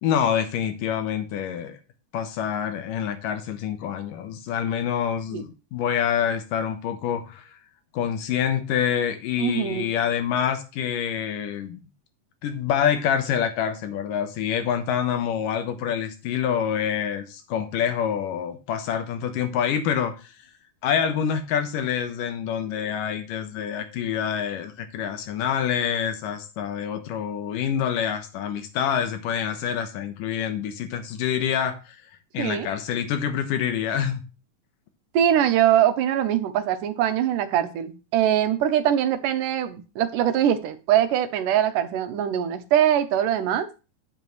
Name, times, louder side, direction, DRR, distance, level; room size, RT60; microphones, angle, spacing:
voice 1, 0.0-1.8 2.1-7.6 7.9-11.8 12.4-20.3 20.8-32.0 32.3-34.2, left 8 dB, 85° left, 8 dB, 2.8 m, -26 dB
voice 2, 9.4-9.9 32.4-32.7 35.1-43.7, right 10 dB, 80° right, 9 dB, 2.4 m, -22 dB
9.3 x 8.8 x 3.2 m, 0.31 s
omnidirectional pair, 3.7 m